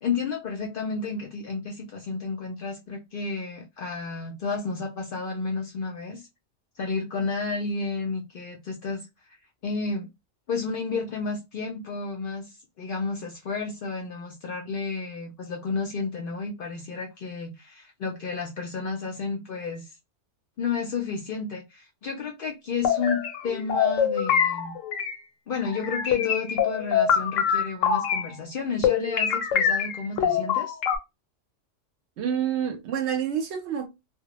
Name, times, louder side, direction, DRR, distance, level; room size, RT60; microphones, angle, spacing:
voice 1, 0.0-6.3 6.8-9.1 9.6-10.1 10.5-20.0 20.6-24.7 25.5-30.8, left 4 dB, 60° left, 0.6 m, -32 dB
sound 1, 22.8-25.2 25.5-28.3 28.8-31.0, left 7 dB, 85° left, 1.0 m, -24 dB
voice 2, 32.2-33.9, right 8 dB, 70° right, 0.8 m, -28 dB
2.2 x 2.0 x 2.9 m
omnidirectional pair, 1.3 m